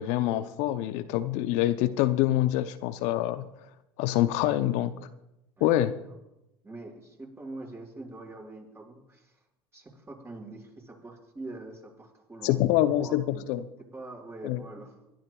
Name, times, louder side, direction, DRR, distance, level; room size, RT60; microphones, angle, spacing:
voice 1, 0.0-3.5 4.0-4.9 5.6-5.9 12.4-13.6 14.4-14.6, left 14 dB, 65° left, 11 dB, 0.7 m, -25 dB
voice 2, 6.6-9.4 9.7-13.4 13.9-14.9, right 2 dB, 20° right, -1 dB, 5.7 m, -44 dB
24.5 x 12.0 x 2.4 m, 0.90 s
hypercardioid pair, 70°, 13 cm